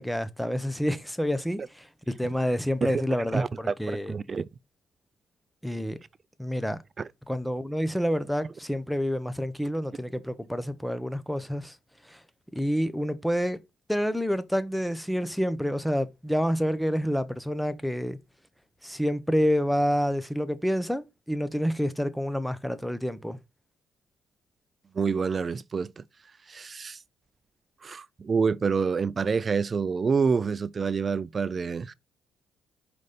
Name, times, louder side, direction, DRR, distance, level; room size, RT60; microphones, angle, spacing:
voice 1, 0.0-4.1 5.6-6.0 6.4-6.8 7.3-11.8 12.0-12.2 12.5-13.6 13.9-18.2 18.8-23.4, equal, ahead, 0.8 m, -28 dB
voice 2, 3.3-4.4 7.0-7.1 24.9-26.0 26.5-27.0 27.8-31.9, right 5 dB, 40° right, 0.4 m, -27 dB
5.3 x 4.1 x 5.0 m
cardioid pair, 90°, 0 cm